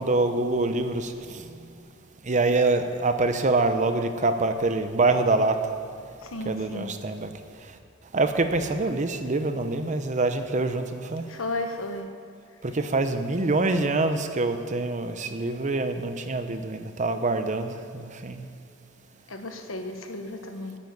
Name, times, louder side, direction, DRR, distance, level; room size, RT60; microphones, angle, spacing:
voice 1, 0.0-1.4 2.3-5.6 6.5-7.3 8.1-11.3 12.6-18.4, right 2 dB, 35° right, 8 dB, 0.8 m, -25 dB
voice 2, 6.2-6.9 11.3-12.1 19.3-20.8, left 2 dB, 85° left, 6 dB, 1.2 m, -34 dB
9.8 x 8.9 x 9.5 m, 2.3 s
head